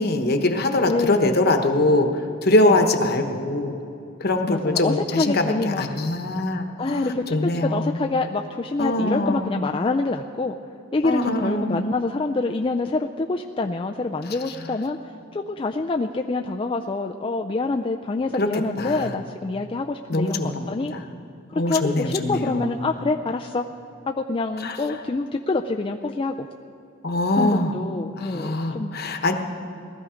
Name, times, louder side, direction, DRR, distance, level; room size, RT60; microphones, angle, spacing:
voice 1, 0.0-2.1 2.4-3.7 4.2-7.9 8.8-9.6 11.0-11.8 18.4-18.5 18.8-19.2 20.1-20.6 20.9-21.0 21.5-22.7 24.6-24.8 27.0-27.7 28.2-29.3, left 2 dB, 50° left, 5 dB, 1.1 m, -22 dB
voice 2, 0.9-1.5 2.6-2.8 4.5-5.9 6.8-10.5 10.9-15.0 15.3-20.9 21.5-23.7 24.1-26.5 27.4-29.0, left 3 dB, 25° left, 3 dB, 0.4 m, -26 dB
19.0 x 13.0 x 5.0 m, 2.6 s
head